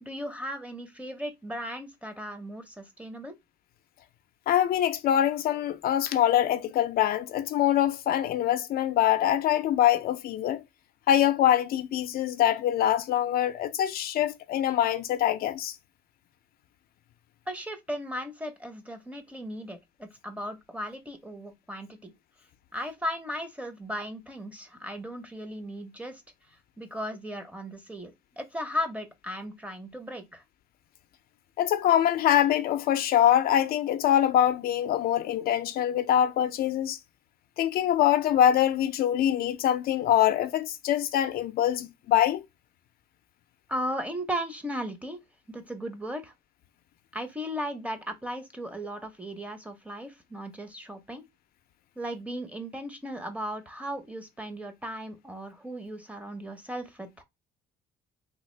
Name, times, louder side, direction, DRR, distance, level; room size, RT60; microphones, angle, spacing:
voice 1, 0.0-3.4 17.5-22.1 22.7-26.2 26.5-30.4 43.7-45.2 45.5-46.3 47.1-51.2 52.0-57.2, equal, 10° right, 0.7 m, -36 dB
voice 2, 4.5-10.6 11.1-15.8 31.6-37.0 37.6-42.4, left 11 dB, 60° left, 0.4 m, -24 dB
3.4 x 2.4 x 3.1 m
cardioid pair, 110°, 17 cm